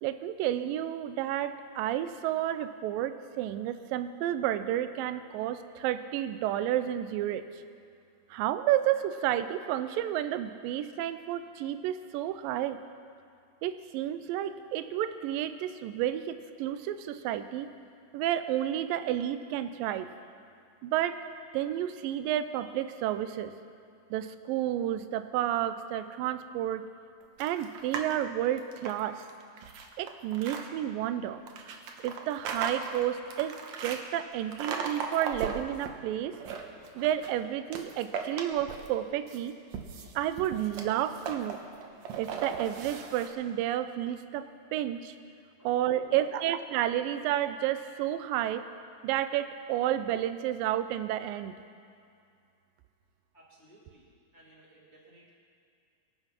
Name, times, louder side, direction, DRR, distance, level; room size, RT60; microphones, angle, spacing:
voice 1, 0.0-7.5 8.3-12.8 13.6-17.7 18.1-20.1 20.8-21.2 21.5-23.5 24.1-26.9 27.4-29.3 30.0-31.4 32.0-36.4 37.0-39.6 40.2-41.6 42.2-44.5 44.7-45.2 45.6-48.7 49.0-51.6, right 12 dB, 85° right, 11 dB, 2.3 m, -31 dB
sound 1, 27.4-28.1 28.5-30.6 31.5-34.0 34.5-35.9 36.3-37.4 37.7-39.0 39.3-43.3, right 6 dB, 65° right, 2.1 m, -37 dB
voice 2, 45.6-46.3 53.3-55.3, right 1 dB, 5° left, -8 dB, 2.0 m, -57 dB
23.5 x 7.8 x 5.9 m, 2.4 s
omnidirectional pair, 4.0 m